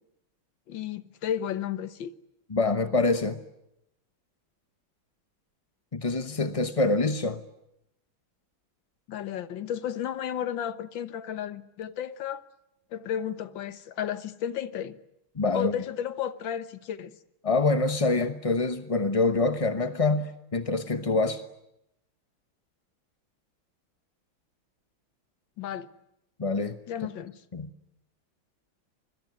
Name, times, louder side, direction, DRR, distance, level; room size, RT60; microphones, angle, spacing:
voice 1, 0.7-2.1 9.1-12.4 12.9-15.0 15.5-17.1 25.6-25.9 26.9-27.3, left 9 dB, 65° left, 1.8 m, -33 dB
voice 2, 2.5-3.4 5.9-7.4 15.4-15.8 17.4-21.4 26.4-26.8 27.5-27.7, left 3 dB, 30° left, 0.6 m, -25 dB
26.5 x 21.5 x 9.5 m
omnidirectional pair, 2.3 m